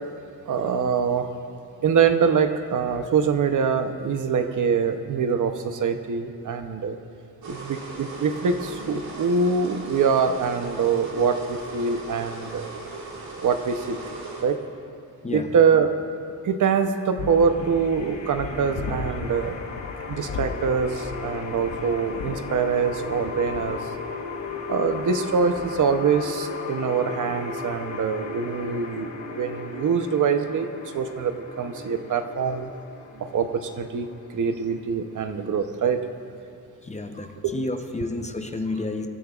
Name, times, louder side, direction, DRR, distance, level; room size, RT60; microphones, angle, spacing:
voice 1, 0.5-1.3 1.8-7.0 7.5-12.6 13.4-14.0 14.4-14.6 15.3-15.9 16.4-19.6 20.1-23.9 24.7-32.7 33.2-34.1 34.3-36.0 37.4-37.5, right 6 dB, 60° right, 7 dB, 0.8 m, -24 dB
sound 1, 7.4-14.4, right 3 dB, 90° right, 2.9 m, -38 dB
sound 2, 17.2-26.2, left 5 dB, 80° left, 0.9 m, -38 dB
sound 3, 17.2-36.1, left 5 dB, 50° left, 1.2 m, -36 dB
voice 2, 36.8-39.1, left 2 dB, 20° left, 5 dB, 0.7 m, -30 dB
24.0 x 13.0 x 2.4 m, 2.4 s
wide cardioid pair, 160°, 35 cm